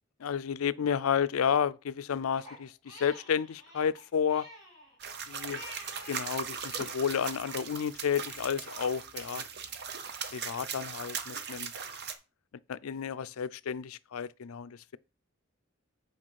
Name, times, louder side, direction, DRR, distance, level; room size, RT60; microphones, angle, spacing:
voice 1, 0.2-4.4 5.3-5.6 6.1-9.4 10.3-11.7 12.7-15.0, left 7 dB, 85° left, 0.4 m, -31 dB
Crying sobbing, 2.4-6.3 6.6-7.7, left 1 dB, 20° right, 5.6 m, -50 dB
sound 1, 5.0-12.1, right 6 dB, 50° right, 0.8 m, -39 dB
8.7 x 4.9 x 4.6 m
head